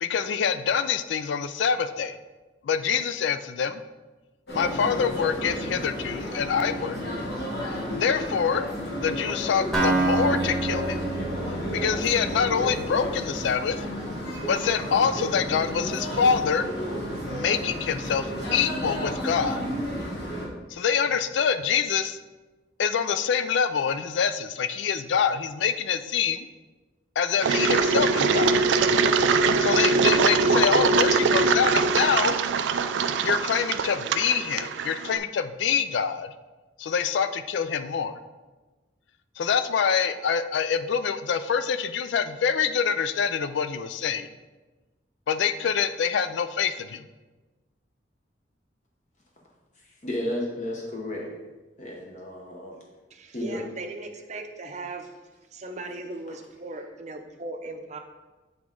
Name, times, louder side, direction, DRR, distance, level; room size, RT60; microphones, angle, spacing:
voice 1, 0.0-2.2 2.6-3.8 4.5-7.0 7.9-8.7 9.0-11.1 11.7-13.9 14.5-16.7 17.2-19.6 20.7-22.2 22.8-26.5 27.2-28.6 29.6-32.3 33.2-36.3 36.8-38.2 39.4-44.3 45.3-47.1, left 7 dB, 85° left, 11 dB, 0.4 m, -25 dB
sound 1, 4.5-20.5, equal, 65° left, 1.4 m, -32 dB
Acoustic guitar, 9.7-13.6, right 3 dB, ahead, 1.2 m, -28 dB
Engine, 27.4-35.2, right 4 dB, 85° right, 0.3 m, -22 dB
voice 2, 50.0-51.3 51.8-52.7 53.3-53.6, left 1 dB, 40° left, -1 dB, 0.8 m, -32 dB
voice 3, 53.1-55.1 55.5-58.0, right 2 dB, 40° right, 5 dB, 0.5 m, -38 dB
7.9 x 3.6 x 3.7 m, 1.2 s
head